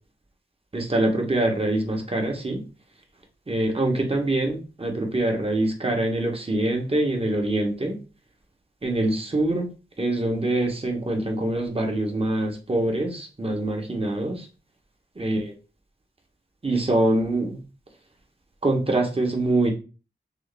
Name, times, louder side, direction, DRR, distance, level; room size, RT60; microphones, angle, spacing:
voice 1, 0.7-2.6 3.5-8.0 8.8-9.7 10.0-14.5 15.2-15.5 16.6-17.6 18.6-19.7, right 2 dB, 30° right, 1 dB, 1.2 m, -24 dB
6.2 x 2.1 x 3.4 m, 0.33 s
wide cardioid pair, 80°, 19 cm